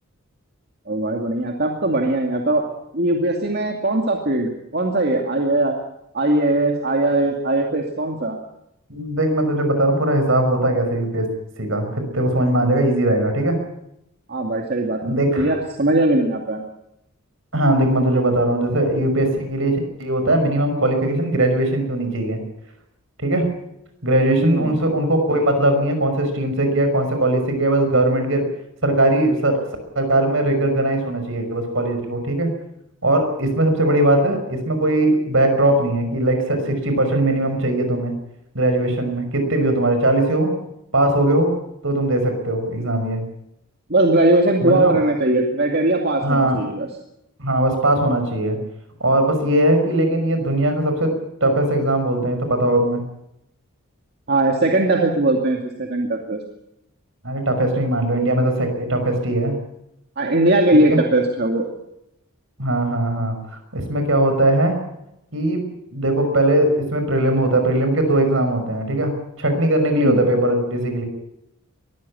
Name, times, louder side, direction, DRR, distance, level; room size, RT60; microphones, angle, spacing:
voice 1, 0.9-2.6 2.9-5.7 6.1-8.4 14.3-16.6 24.4-24.8 43.9-46.9 54.3-56.4 60.2-61.6 69.9-70.2, right 2 dB, 45° right, 2 dB, 2.4 m, -20 dB
voice 2, 8.9-11.3 11.6-13.6 15.1-15.5 17.5-19.7 20.0-22.4 23.2-23.5 24.0-28.5 28.8-29.6 30.0-32.5 33.0-38.1 38.5-40.5 40.9-41.5 41.8-43.2 44.6-45.0 46.2-46.6 47.4-48.6 49.0-51.1 51.4-53.0 57.2-59.6 60.9-61.0 62.6-64.8 65.3-71.1, right 1 dB, 65° right, 6 dB, 5.6 m, -20 dB
22.5 x 15.5 x 8.5 m, 0.82 s
head